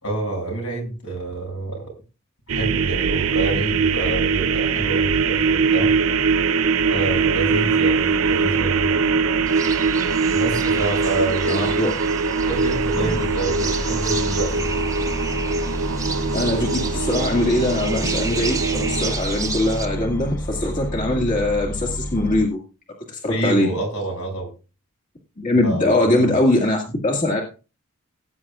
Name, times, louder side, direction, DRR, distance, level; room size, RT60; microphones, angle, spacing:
voice 1, 0.0-1.9 2.5-5.9 6.9-9.0 10.3-11.8 12.5-14.9 23.3-24.5 25.6-26.1, right 2 dB, 75° left, 3 dB, 6.7 m, -27 dB
sound 1, 2.5-19.1, right 5 dB, 65° right, 0.6 m, -22 dB
sound 2, 7.0-22.4, equal, 10° left, 0.6 m, -31 dB
sound 3, 9.5-19.9, right 4 dB, 15° right, 0.9 m, -32 dB
voice 2, 11.5-11.9 13.0-13.2 16.3-22.6 23.1-23.7 25.4-27.4, left 1 dB, 35° left, -1 dB, 2.0 m, -21 dB
19.0 x 9.8 x 2.4 m, 0.33 s
head